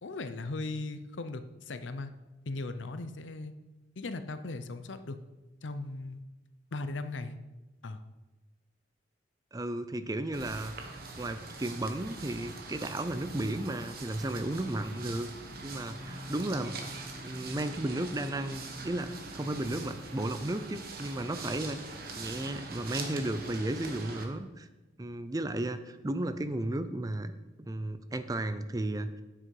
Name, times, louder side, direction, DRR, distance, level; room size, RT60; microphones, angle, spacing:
voice 1, 0.0-2.1 2.5-3.5 4.0-5.2 5.6-6.2 6.7-7.4 7.8-8.0, left 2 dB, 85° left, 11 dB, 0.7 m, -38 dB
voice 2, 9.5-10.7 11.2-15.3 15.6-16.8 17.2-21.8 22.2-24.7 25.0-27.3 27.7-29.2, right 1 dB, 20° right, 11 dB, 0.5 m, -34 dB
sound 1, 10.3-24.3, right 3 dB, 50° right, 1.3 m, -43 dB
9.7 x 8.0 x 4.8 m, 1.1 s
head